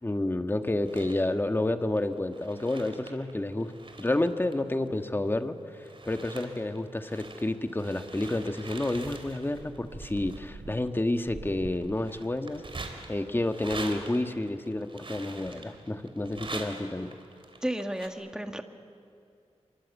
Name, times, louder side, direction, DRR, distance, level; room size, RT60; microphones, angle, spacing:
voice 1, 0.0-3.7 4.0-12.6 13.1-17.2, left 1 dB, 20° left, 7 dB, 1.5 m, -30 dB
sound 1, 0.7-1.3 2.0-5.4 5.7-18.1, right 3 dB, 50° right, 3.3 m, -44 dB
voice 2, 17.6-18.6, right 1 dB, 5° right, 6 dB, 1.8 m, -32 dB
27.0 x 24.0 x 8.3 m, 2.5 s
wide cardioid pair, 80°, 11 cm